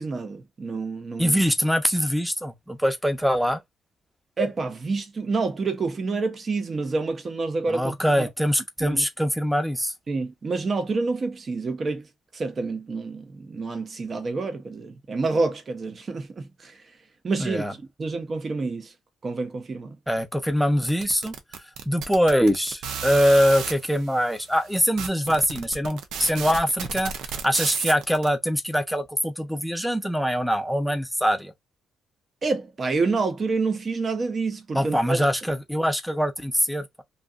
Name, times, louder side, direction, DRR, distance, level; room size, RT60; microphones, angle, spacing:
voice 1, 0.0-1.4 4.4-8.3 8.8-9.0 10.1-12.1 12.3-16.8 17.2-17.7 18.0-18.9 19.2-20.0 32.4-35.3, right 3 dB, 40° right, 0.6 m, -28 dB
voice 2, 1.2-3.6 7.7-9.9 17.4-17.7 20.1-21.3 21.9-27.1 27.4-31.5 34.7-37.0, equal, ahead, 0.6 m, -23 dB
sound 1, 20.9-23.7 24.4-24.5 24.7-28.3, right 6 dB, 80° right, 0.6 m, -32 dB
2.6 x 2.3 x 2.4 m
cardioid pair, 90°, 0 cm